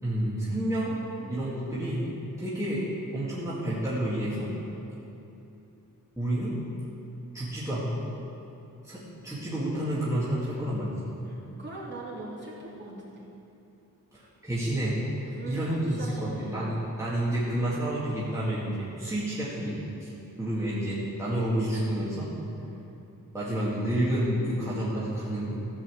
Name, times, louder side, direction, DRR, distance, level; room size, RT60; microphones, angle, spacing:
voice 1, 0.0-1.0 1.2-2.1 2.4-2.8 3.1-4.5 6.2-6.5 7.3-8.0 8.8-11.1 14.1-15.0 15.4-20.1 20.4-22.3 23.3-25.5, right 1 dB, 10° right, -9 dB, 2.2 m, -29 dB
voice 2, 11.2-13.3 15.3-16.6 22.6-23.0, right 2 dB, 30° right, -7 dB, 3.0 m, -42 dB
15.0 x 5.6 x 7.9 m, 2.9 s
wide cardioid pair, 135°, 33 cm